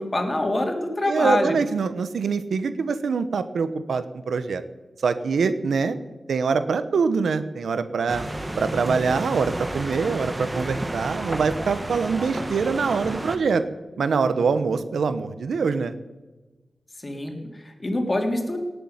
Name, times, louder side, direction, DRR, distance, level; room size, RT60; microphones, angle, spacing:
voice 1, 0.0-1.6 17.0-18.6, left 1 dB, 35° left, 3 dB, 3.4 m, -25 dB
voice 2, 1.1-4.6 5.0-6.0 6.3-8.2 8.6-13.6 14.0-15.9, right 5 dB, 90° right, 11 dB, 1.1 m, -24 dB
sound 1, 8.1-13.4, right 1 dB, 20° right, 1.7 m, -31 dB
18.0 x 8.4 x 9.7 m, 1.2 s
cardioid pair, 70°, 0 cm